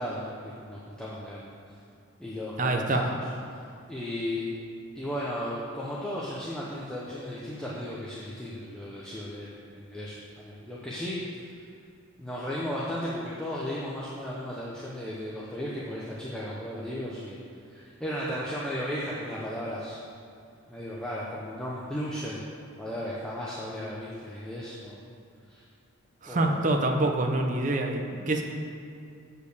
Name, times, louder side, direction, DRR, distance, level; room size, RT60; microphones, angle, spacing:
voice 1, 0.0-1.5 2.2-3.1 3.5-3.6 3.9-4.4 4.9-11.6 12.2-17.4 17.7-20.0 20.7-22.4 22.8-25.0 25.5-25.6 26.3-26.6, equal, 5° left, -7 dB, 0.8 m, -35 dB
voice 2, 2.6-3.0 26.2-28.4, right 2 dB, 35° right, 3 dB, 0.7 m, -26 dB
8.5 x 5.4 x 6.7 m, 2.5 s
head